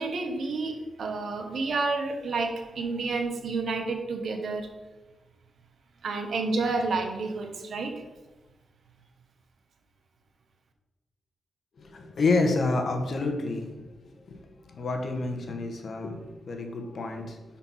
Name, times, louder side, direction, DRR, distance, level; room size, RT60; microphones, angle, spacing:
voice 1, 0.0-4.7 6.0-7.9, right 3 dB, 65° right, 4 dB, 1.1 m, -30 dB
voice 2, 11.8-17.4, left 3 dB, 60° left, 4 dB, 1.2 m, -29 dB
5.9 x 4.3 x 5.6 m, 1.1 s
cardioid pair, 70°, 0 cm